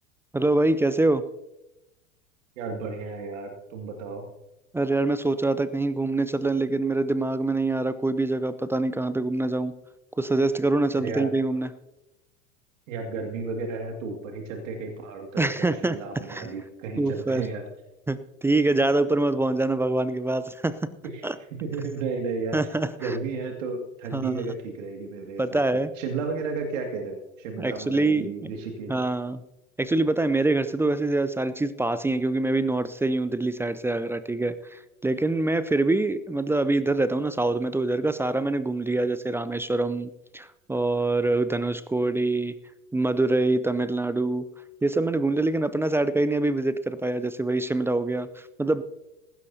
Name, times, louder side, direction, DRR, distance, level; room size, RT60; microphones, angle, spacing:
voice 1, 0.3-1.2 4.7-9.7 10.2-11.7 15.4-16.0 16.3-16.5 17.0-17.4 18.1-20.8 21.2-21.4 22.5-23.1 24.1-24.4 25.4-25.9 27.6-28.3 28.9-29.4 29.8-42.6 42.9-44.5 44.8-48.8, right 2 dB, 5° right, 14 dB, 0.4 m, -25 dB
voice 2, 2.6-4.2 10.9-11.3 12.9-17.6 21.1-21.3 21.6-22.6 23.0-25.6 26.0-28.9, right 4 dB, 65° right, 2 dB, 2.2 m, -33 dB
18.5 x 16.0 x 2.7 m, 0.96 s
hypercardioid pair, 85°, 40 cm